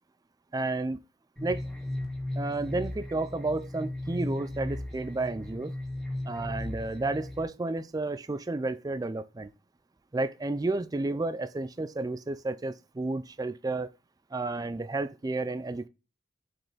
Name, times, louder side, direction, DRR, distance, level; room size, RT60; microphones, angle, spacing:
voice 1, 0.5-1.0 1.4-1.6 2.4-5.7 6.3-9.5 10.1-13.9 14.3-15.9, right 2 dB, 20° right, 0.3 m, -31 dB
sound 1, 1.4-7.4, left 1 dB, ahead, 2.1 m, -36 dB
7.3 x 5.4 x 3.9 m
head